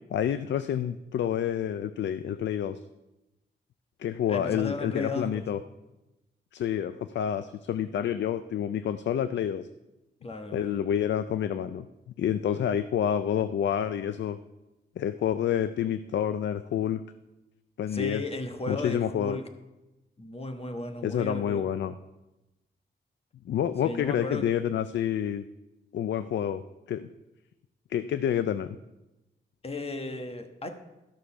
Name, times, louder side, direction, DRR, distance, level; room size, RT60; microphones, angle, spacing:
voice 1, 0.1-2.8 4.0-5.6 6.5-9.7 10.5-11.9 12.2-14.4 15.0-17.0 17.8-18.2 18.7-19.4 21.0-21.9 23.5-25.4 25.9-26.6 26.9-27.1 27.9-28.8, left 9 dB, 70° left, 12 dB, 0.4 m, -28 dB
voice 2, 4.3-5.5 10.2-10.7 17.9-19.5 20.2-21.6 23.8-24.5 29.6-30.7, left 2 dB, 30° left, 6 dB, 1.2 m, -35 dB
13.0 x 6.5 x 5.7 m, 1.0 s
cardioid pair, 100°, 19 cm